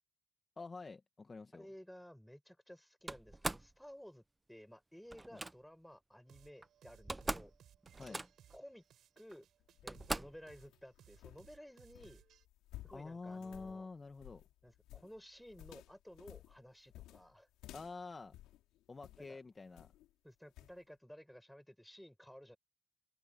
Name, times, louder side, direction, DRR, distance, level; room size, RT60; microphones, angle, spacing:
voice 1, 0.6-1.7 5.3-5.4 8.0-8.2 12.9-14.4 17.7-18.3 18.9-19.9, left 3 dB, 30° left, 2.0 m, -48 dB
voice 2, 1.5-4.2 4.5-7.5 8.5-8.8 9.2-9.5 9.8-12.2 12.8-13.9 14.6-17.5 19.2-19.4 20.2-22.6, equal, 5° left, 6.5 m, -55 dB
Slam, 3.1-3.7 5.1-5.5 6.6-6.7 6.9-7.6 7.8-8.5 9.3-9.4 9.9-10.4, right 2 dB, 15° right, 0.9 m, -41 dB
sound 1, 6.3-12.5, right 10 dB, 65° right, 5.8 m, -64 dB
sound 2, 9.6-19.3 19.8-20.1 20.6-20.8, left 15 dB, 75° left, 6.0 m, -56 dB
hypercardioid pair, 55°, 0 cm